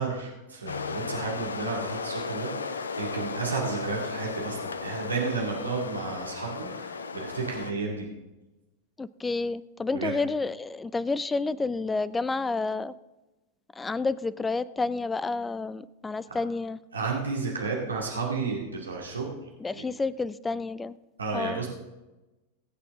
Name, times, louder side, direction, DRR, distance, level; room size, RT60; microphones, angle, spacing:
voice 1, 0.0-8.1 9.9-10.1 16.3-16.4 16.9-19.3 19.7-19.8 21.2-21.7, right 4 dB, 75° right, -2 dB, 2.4 m, -32 dB
sound 1, 0.7-7.7, left 5 dB, 70° left, 0.7 m, -35 dB
voice 2, 9.0-12.9 13.8-16.8 19.6-21.0 21.3-21.6, left 3 dB, 10° left, 19 dB, 0.5 m, -30 dB
22.0 x 8.4 x 3.7 m, 1.1 s
figure-of-eight pair, 90°, 0 cm